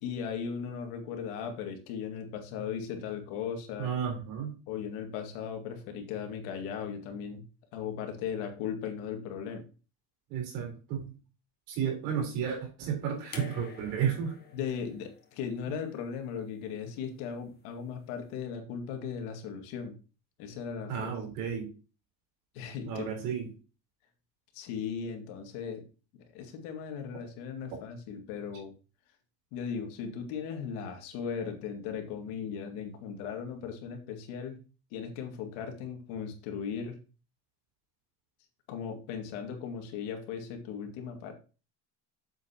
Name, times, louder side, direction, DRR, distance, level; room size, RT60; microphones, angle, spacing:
voice 1, 0.0-3.9 4.7-7.4 7.7-9.6 14.5-19.9 20.4-21.1 22.5-23.1 24.5-25.8 26.2-28.7 29.5-34.6 34.9-37.0 38.7-41.3, left 7 dB, 90° left, 3 dB, 2.2 m, -37 dB
voice 2, 3.8-4.5 10.3-11.2 11.7-14.4 15.7-15.8 20.9-21.7 22.9-23.5, right 7 dB, 90° right, 1 dB, 4.1 m, -32 dB
sound 1, 13.3-16.5 17.7-17.8, left 5 dB, 25° left, 1.8 m, -49 dB
8.4 x 7.5 x 2.9 m, 0.34 s
cardioid pair, 135°, 39 cm